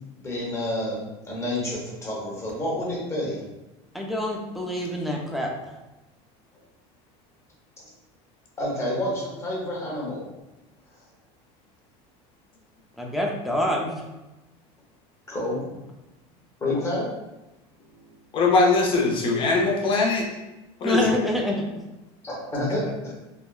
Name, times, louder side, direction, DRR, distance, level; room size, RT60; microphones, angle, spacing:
voice 1, 0.2-1.0 1.2-3.4 7.8-7.9 8.6-10.3 15.3-15.6 16.6-17.1 22.2-23.1, left 1 dB, 20° left, -4 dB, 1.1 m, -29 dB
voice 2, 3.9-5.5 13.0-13.9 20.8-21.6, left 1 dB, ahead, -1 dB, 0.4 m, -26 dB
voice 3, 18.3-20.3 20.8-21.1, left 3 dB, 35° left, 0 dB, 0.6 m, -21 dB
3.4 x 2.1 x 2.3 m, 1.0 s
supercardioid pair, 130°, 14 cm